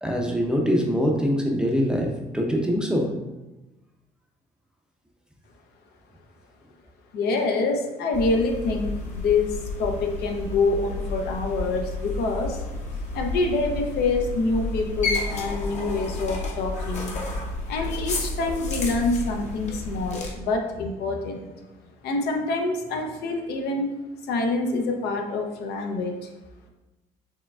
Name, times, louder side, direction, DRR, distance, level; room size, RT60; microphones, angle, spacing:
voice 1, 0.0-3.1, equal, 5° right, 0 dB, 0.5 m, -23 dB
voice 2, 7.1-12.6 13.1-17.2 17.7-21.5 22.0-23.9 24.3-26.3, left 3 dB, 75° left, 2 dB, 0.6 m, -26 dB
sound 1, 8.1-20.3, left 2 dB, 45° left, 0.8 m, -31 dB
4.7 x 3.2 x 2.3 m, 1.0 s
cardioid pair, 110°, 17 cm